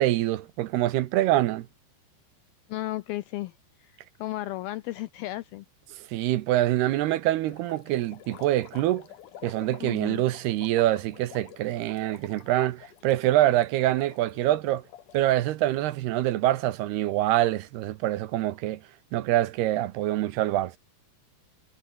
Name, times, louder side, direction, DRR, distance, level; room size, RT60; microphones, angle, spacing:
voice 1, 0.0-1.7 6.0-9.0 9.4-14.8 15.1-18.8 19.1-20.8, right 14 dB, 75° right, 2.8 m, -25 dB
voice 2, 2.7-3.5 3.8-5.7 9.8-10.3, left 16 dB, 80° left, 2.2 m, -34 dB
sound 1, 7.5-15.5, left 11 dB, 60° left, 2.5 m, -49 dB
omnidirectional pair, 5.1 m